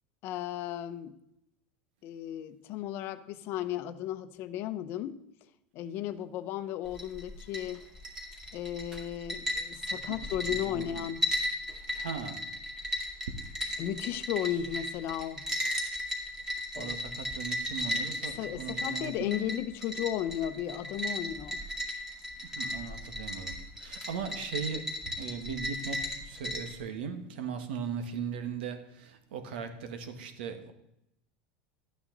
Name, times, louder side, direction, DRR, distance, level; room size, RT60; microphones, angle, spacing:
voice 1, 0.2-1.1 2.0-5.2 5.7-7.8 8.5-11.3 13.8-15.4 16.7-16.9 18.4-21.6, left 11 dB, 45° left, 0.7 m, -35 dB
sound 1, 6.9-26.8, left 1 dB, 5° right, 2.1 m, -36 dB
voice 2, 10.5-10.9 11.9-12.4 16.8-19.4 22.5-24.9 25.2-30.7, right 6 dB, 90° right, 1.5 m, -38 dB
12.5 x 9.0 x 4.0 m
supercardioid pair, 150°, 5 cm